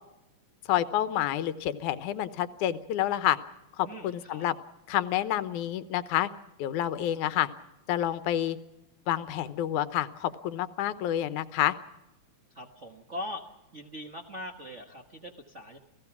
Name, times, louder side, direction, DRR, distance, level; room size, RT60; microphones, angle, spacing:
voice 1, 0.7-3.4 3.8-4.5 4.9-6.3 6.6-7.5 7.9-8.6 9.1-11.7, left 12 dB, 85° left, 13 dB, 2.4 m, -28 dB
voice 2, 3.8-4.5 12.5-13.4 13.7-15.8, left 1 dB, 40° right, 1 dB, 1.1 m, -41 dB
29.0 x 17.0 x 6.0 m, 0.96 s
omnidirectional pair, 3.4 m